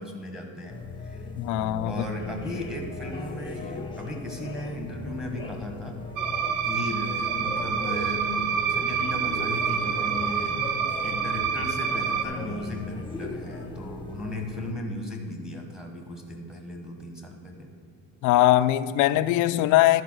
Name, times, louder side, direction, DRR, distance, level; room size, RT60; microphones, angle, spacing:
voice 1, 0.0-1.3 1.8-6.0 6.6-8.3 8.7-10.6 11.0-17.7, left 1 dB, ahead, 2 dB, 1.2 m, -36 dB
sound 1, 0.7-14.7, left 3 dB, 15° left, 0.8 m, -38 dB
voice 2, 1.4-2.0 18.2-20.0, left 14 dB, 60° left, 14 dB, 0.5 m, -21 dB
sound 2, 6.2-12.2, right 7 dB, 65° right, 0.8 m, -27 dB
11.0 x 4.8 x 6.2 m, 2.4 s
cardioid pair, 130°, 34 cm